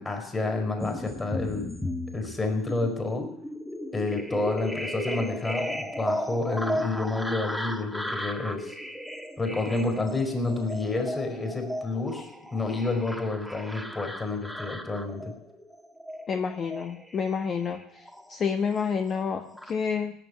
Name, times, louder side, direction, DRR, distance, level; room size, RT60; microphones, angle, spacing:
voice 1, 0.0-1.7 2.1-3.3 3.9-8.7 9.4-15.3, left 3 dB, 20° left, 4 dB, 5.1 m, -29 dB
sound 1, 0.8-18.5 18.9-19.7, left 1 dB, 5° left, 1.6 m, -35 dB
voice 2, 16.3-18.0 18.3-20.1, left 6 dB, 40° left, 7 dB, 1.2 m, -29 dB
17.5 x 7.6 x 9.8 m, 0.76 s
supercardioid pair, 90°, 0 cm